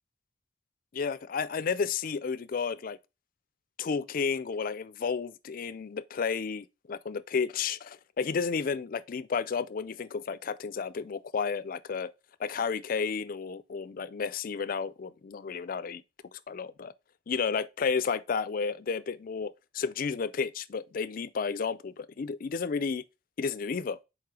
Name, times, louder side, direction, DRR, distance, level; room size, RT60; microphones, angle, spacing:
voice 1, 0.9-3.0 3.8-12.1 12.4-16.0 16.3-16.9 17.3-23.0 23.4-24.0, left 5 dB, 50° left, 0.4 m, -32 dB
4.7 x 4.3 x 4.7 m
head